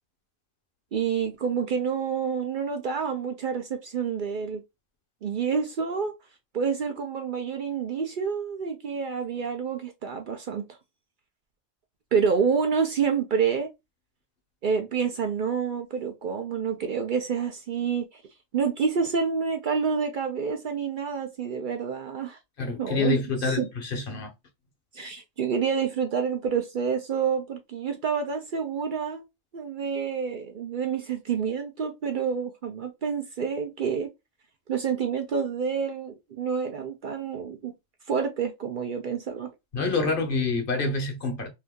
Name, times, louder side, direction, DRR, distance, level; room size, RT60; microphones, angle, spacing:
voice 1, 0.9-4.6 5.2-6.1 6.5-10.7 12.1-13.7 14.6-18.2 18.5-22.4 22.8-23.7 24.9-29.2 29.5-34.1 34.7-37.7 38.1-39.5, right 6 dB, 55° right, 0.6 m, -28 dB
voice 2, 22.6-24.3 39.7-41.5, left 3 dB, 55° left, 0.9 m, -27 dB
2.7 x 2.6 x 3.5 m
omnidirectional pair, 1.1 m